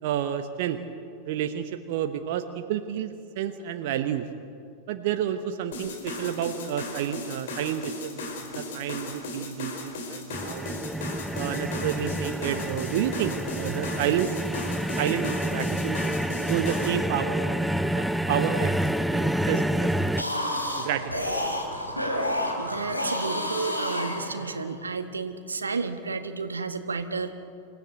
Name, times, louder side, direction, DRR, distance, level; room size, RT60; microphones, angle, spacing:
voice 1, 0.0-0.8 1.2-4.3 4.9-10.7 11.3-14.5 15.0-16.0 16.5-17.6 17.9-18.8 19.1-20.1 20.8-21.5, right 10 dB, 50° right, 7 dB, 1.1 m, -30 dB
sound 1, 5.7-17.0, left 2 dB, 60° left, 3.9 m, -37 dB
sound 2, 10.3-20.2, right 1 dB, ahead, 0.7 m, -28 dB
sound 3, 20.0-24.8, left 1 dB, 90° left, 3.7 m, -30 dB
voice 2, 22.6-27.3, right 4 dB, 75° right, 9 dB, 1.5 m, -32 dB
27.5 x 16.5 x 8.0 m, 2.5 s
figure-of-eight pair, 90°, 0 cm